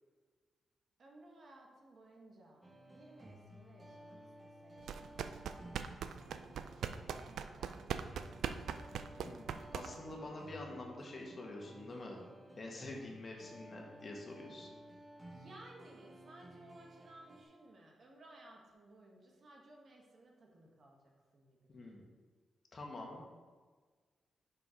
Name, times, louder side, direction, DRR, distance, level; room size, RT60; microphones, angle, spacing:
voice 1, 1.0-8.6 15.3-21.9, right 1 dB, 55° right, -1 dB, 1.5 m, -59 dB
sound 1, 2.6-17.4, right 1 dB, 25° right, 1.2 m, -56 dB
sound 2, 4.8-10.2, right 7 dB, 85° right, 0.3 m, -41 dB
voice 2, 9.2-12.2 12.6-14.7 21.7-22.0 22.7-23.2, left 2 dB, 50° left, 0 dB, 1.4 m, -47 dB
5.6 x 4.8 x 5.0 m, 1.5 s
cardioid pair, 65°, 0 cm